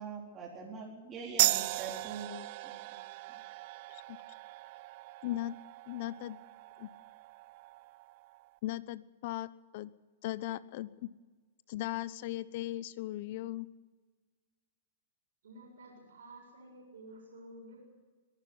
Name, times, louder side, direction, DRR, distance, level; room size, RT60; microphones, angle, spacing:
voice 1, 0.0-2.8 3.3-3.4, right 4 dB, 25° right, -3 dB, 4.2 m, -44 dB
sound 1, 1.4-8.5, right 19 dB, 50° right, 0.7 m, -36 dB
voice 2, 5.2-5.6 5.9-6.4 6.8-6.9 8.6-9.9 10.2-11.1 11.7-13.7, left 15 dB, 50° left, 17 dB, 0.9 m, -38 dB
voice 3, 15.4-17.8, right 1 dB, 80° right, 0 dB, 7.3 m, -52 dB
23.0 x 11.5 x 9.9 m, 1.4 s
hypercardioid pair, 130°, 0 cm